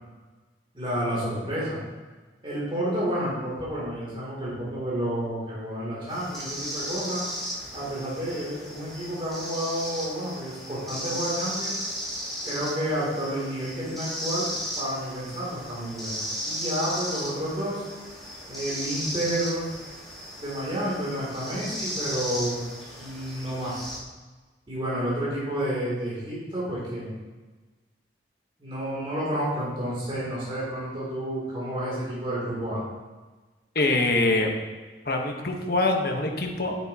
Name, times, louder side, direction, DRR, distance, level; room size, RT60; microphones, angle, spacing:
voice 1, 0.7-1.8 2.4-7.2 7.7-11.8 12.4-17.8 18.5-19.7 20.4-22.7 22.9-23.9 24.7-27.1 28.6-32.8, right 1 dB, 30° right, -7 dB, 3.0 m, -30 dB
sound 1, 6.1-24.0, equal, ahead, 2.9 m, -35 dB
voice 2, 33.7-34.5 35.0-36.9, left 2 dB, 55° left, 2 dB, 1.2 m, -24 dB
10.0 x 8.9 x 2.9 m, 1.3 s
head